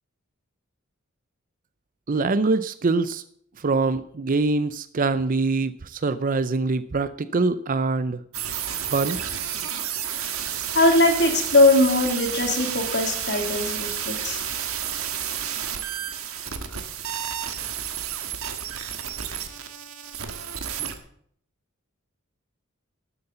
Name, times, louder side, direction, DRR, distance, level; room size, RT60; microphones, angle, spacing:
voice 1, 2.1-3.2 3.6-8.2 8.9-9.2, right 3 dB, 40° right, 13 dB, 0.5 m, -24 dB
sound 1, 8.3-21.0, right 9 dB, 80° right, 1.5 m, -31 dB
voice 2, 10.7-14.4, left 2 dB, 55° left, 3 dB, 2.7 m, -20 dB
12.5 x 7.9 x 6.7 m, 0.64 s
head